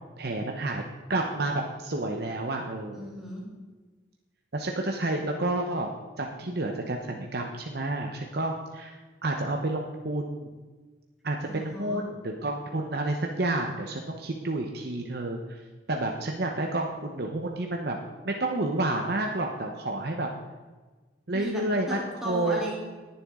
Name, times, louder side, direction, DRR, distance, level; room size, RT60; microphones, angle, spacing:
voice 1, 0.2-0.8 1.1-3.1 4.5-5.9 6.2-10.5 11.2-15.6 15.9-18.0 18.2-20.3 21.3-22.0 22.2-22.6, right 2 dB, 55° right, 2 dB, 0.9 m, -30 dB
voice 2, 2.9-3.5 11.4-12.0 21.3-22.7, equal, 5° right, -5 dB, 3.1 m, -36 dB
19.5 x 7.2 x 3.7 m, 1.3 s
head